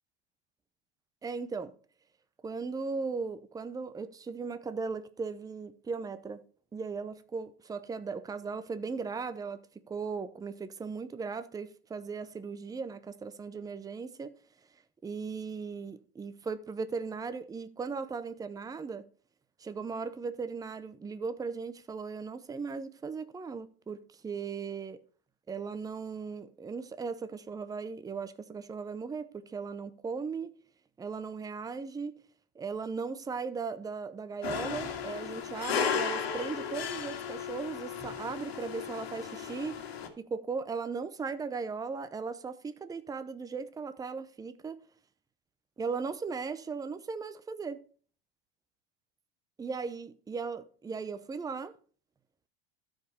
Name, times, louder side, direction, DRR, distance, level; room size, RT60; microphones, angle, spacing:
voice 1, 1.2-1.8 2.4-6.4 6.7-9.6 9.9-14.3 15.0-19.1 19.6-25.0 25.5-30.5 31.0-32.2 32.5-39.9 40.2-44.8 45.8-47.8 49.6-51.7, right 5 dB, 10° right, 0.7 m, -37 dB
sound 1, 34.4-40.1, left 7 dB, 90° left, 2.0 m, -35 dB
13.0 x 5.0 x 4.9 m
hypercardioid pair, 105°, 30 cm